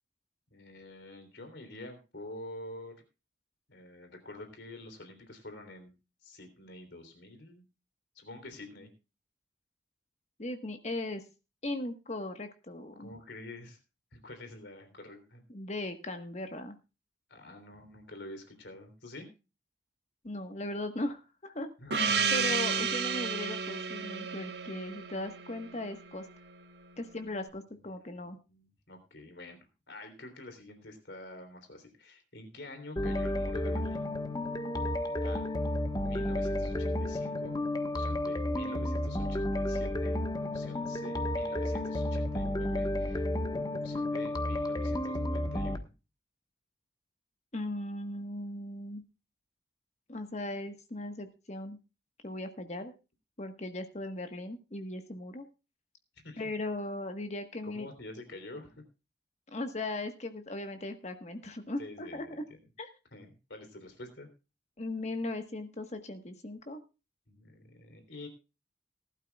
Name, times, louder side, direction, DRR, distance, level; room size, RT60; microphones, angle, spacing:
voice 1, 0.5-3.0 3.7-5.9 6.2-7.6 8.1-8.9 12.9-13.8 14.1-15.4 17.3-19.3 21.8-22.5 27.7-27.9 28.2-34.0 35.2-35.5 36.0-37.6 38.0-45.9 56.2-56.4 57.6-58.8 61.8-62.6 63.1-64.3 67.3-68.3, left 2 dB, 80° left, 8 dB, 3.4 m, -47 dB
voice 2, 10.4-11.2 11.6-13.1 15.5-16.8 20.2-21.7 22.3-26.3 27.0-28.4 47.5-49.0 50.1-51.8 52.2-52.9 53.4-55.4 56.4-57.9 59.5-62.3 62.8-62.9 64.8-66.8, left 2 dB, 40° left, 7 dB, 1.3 m, -38 dB
Gong, 21.9-26.2, right 5 dB, 70° right, 1.4 m, -32 dB
sound 1, 33.0-45.8, left 1 dB, 25° left, 1.3 m, -32 dB
19.0 x 12.0 x 2.4 m, 0.30 s
head